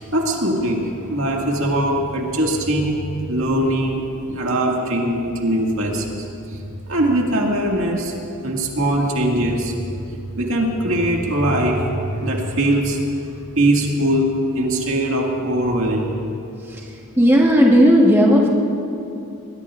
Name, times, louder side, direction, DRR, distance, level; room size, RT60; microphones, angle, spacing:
voice 1, 0.0-3.0 3.3-6.1 6.5-6.6 6.9-8.1 8.4-9.7 10.4-13.0 13.6-16.1, right 1 dB, 70° right, -1 dB, 2.0 m, -21 dB
voice 2, 17.2-18.5, equal, 10° right, -2 dB, 1.2 m, -13 dB
21.5 x 21.0 x 2.5 m, 2.6 s
head